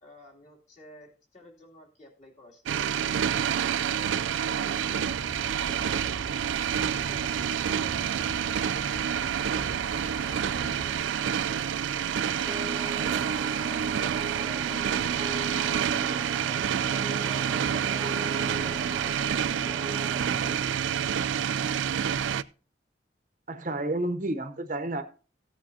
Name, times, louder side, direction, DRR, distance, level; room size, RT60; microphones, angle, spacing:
voice 1, 0.0-3.1 3.9-6.2 6.7-8.5 9.5-9.7 10.1-12.8 13.2-16.6 17.0-20.8, left 1 dB, 40° left, 2.7 m, -51 dB
sound 1, 2.7-22.4, right 8 dB, 90° right, 0.4 m, -28 dB
sound 2, 4.8-11.0, equal, 80° left, 3.3 m, -43 dB
sound 3, 12.5-20.6, right 2 dB, 15° right, 0.4 m, -38 dB
voice 2, 23.5-25.0, right 1 dB, 45° right, 0.8 m, -30 dB
15.0 x 8.6 x 2.7 m
head